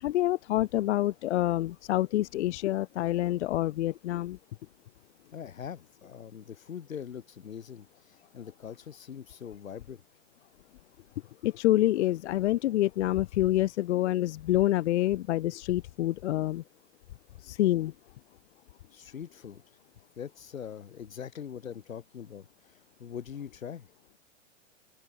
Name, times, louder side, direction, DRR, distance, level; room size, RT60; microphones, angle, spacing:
voice 1, 0.0-4.4 11.4-16.6 17.4-17.9, left 14 dB, 60° left, 0.7 m, -27 dB
voice 2, 5.3-10.0 18.9-19.6 20.2-22.5 23.0-23.9, left 8 dB, 85° left, 5.8 m, -42 dB
open air
hypercardioid pair, 145°, 39 cm